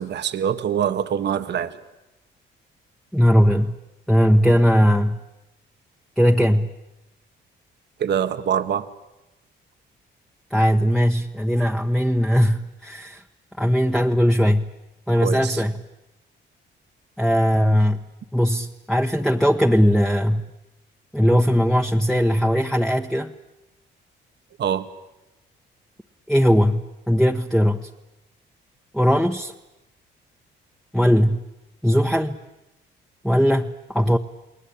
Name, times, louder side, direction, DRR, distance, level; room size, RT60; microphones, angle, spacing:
voice 1, 0.0-1.8 8.0-8.9 15.2-15.6 24.6-24.9, right 8 dB, 60° right, 9 dB, 1.4 m, -24 dB
voice 2, 3.1-3.8 4.1-5.2 6.2-6.7 10.5-13.2 13.6-14.7 15.1-15.8 17.2-18.1 18.3-20.5 21.1-23.3 26.3-27.9 28.9-29.5 30.9-31.4 31.8-32.4 33.2-34.2, equal, ahead, 3 dB, 1.1 m, -19 dB
29.5 x 20.0 x 8.6 m, 0.98 s
cardioid pair, 90°, 20 cm